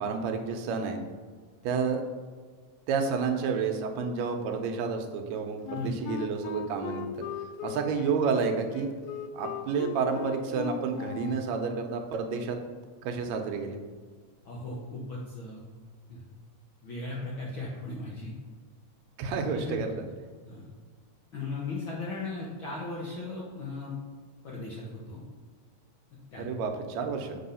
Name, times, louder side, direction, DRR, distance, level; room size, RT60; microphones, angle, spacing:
voice 1, 0.0-1.0 1.6-2.0 2.9-7.0 7.6-8.9 9.3-12.6 13.0-13.8 19.2-19.9 26.4-27.4, right 5 dB, 75° right, 4 dB, 2.0 m, -30 dB
Wind instrument woodwind instrument, 5.6-11.5, left 7 dB, 85° left, 1.4 m, -38 dB
voice 2, 14.4-15.6 16.1-16.2 16.8-18.3 19.5-19.8 20.4-20.7 21.3-23.9 24.4-25.2 26.3-26.4, left 2 dB, 65° left, -4 dB, 1.3 m, -37 dB
7.7 x 3.4 x 5.5 m, 1.5 s
omnidirectional pair, 3.3 m